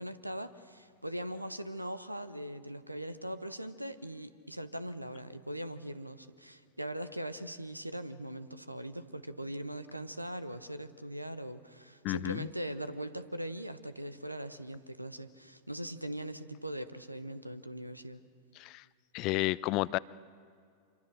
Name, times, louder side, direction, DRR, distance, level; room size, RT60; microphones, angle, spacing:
voice 1, 0.0-18.2, right 1 dB, 85° right, 13 dB, 1.0 m, -40 dB
voice 2, 12.0-12.5 18.6-18.8 19.1-20.0, left 19 dB, 40° left, 20 dB, 0.5 m, -31 dB
26.5 x 23.5 x 6.6 m, 2.2 s
figure-of-eight pair, 90°, 0 cm